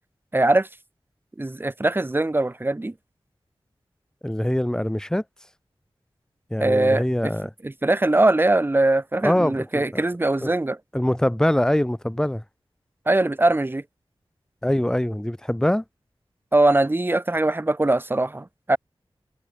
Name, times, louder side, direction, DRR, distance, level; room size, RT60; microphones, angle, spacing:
voice 1, 0.3-0.7 1.4-2.9 6.6-7.3 7.6-10.8 13.1-13.8 16.5-18.8, right 2 dB, 20° right, 0.8 m, -21 dB
voice 2, 4.2-5.2 6.5-7.5 9.2-10.0 10.4-10.5 10.9-12.4 14.6-15.8, left 1 dB, 5° left, 1.1 m, -23 dB
wide cardioid pair, 70°, 10 cm